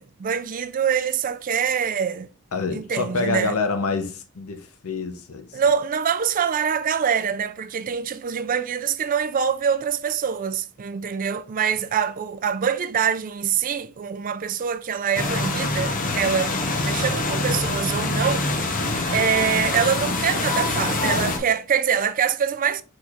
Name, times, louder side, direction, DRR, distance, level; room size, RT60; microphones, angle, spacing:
voice 1, 0.0-2.3 2.7-3.5 5.5-16.5 16.8-18.8 19.1-22.8, right 7 dB, 40° right, 0.4 m, -24 dB
voice 2, 2.5-5.6, left 4 dB, 80° left, 0.8 m, -27 dB
sound 1, 15.1-21.4, left 2 dB, 40° left, 0.8 m, -25 dB
4.6 x 4.4 x 2.4 m
head